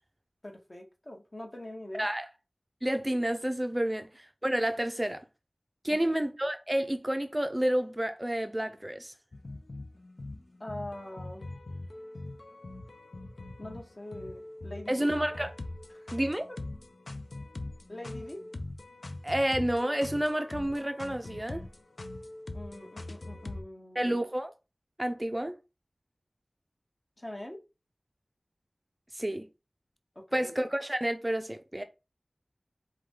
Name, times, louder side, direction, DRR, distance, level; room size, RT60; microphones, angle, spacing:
voice 1, 0.4-2.1 6.0-6.1 10.6-11.4 13.6-15.0 15.9-16.1 16.5-16.6 17.9-18.4 22.5-24.2 27.2-27.6 30.1-30.5, left 1 dB, 40° left, 1.1 m, -43 dB
voice 2, 2.8-5.2 5.8-9.1 14.9-15.5 16.1-16.5 19.2-21.6 24.0-24.5 25.0-25.5 29.1-29.5 30.3-31.8, right 1 dB, 20° right, 0.4 m, -30 dB
sound 1, 9.3-23.6, left 2 dB, 75° left, 0.5 m, -42 dB
4.6 x 2.3 x 3.6 m
wide cardioid pair, 45°, 0 cm